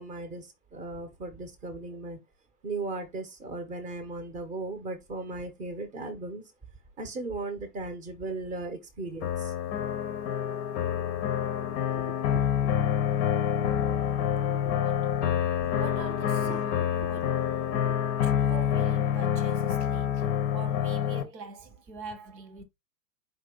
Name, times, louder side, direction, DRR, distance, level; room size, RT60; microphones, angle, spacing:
voice 1, 0.0-2.2 2.6-6.4 7.0-9.5 11.9-12.7 13.1-13.3 14.4-14.8 16.4-16.8 17.7-18.1, right 3 dB, 15° right, 0.8 m, -37 dB
sound 1, 9.2-21.2, left 9 dB, 25° left, 0.6 m, -27 dB
voice 2, 14.7-17.5 18.2-22.6, right 4 dB, 80° right, 1.3 m, -44 dB
4.6 x 2.6 x 3.8 m
hypercardioid pair, 120°, 49 cm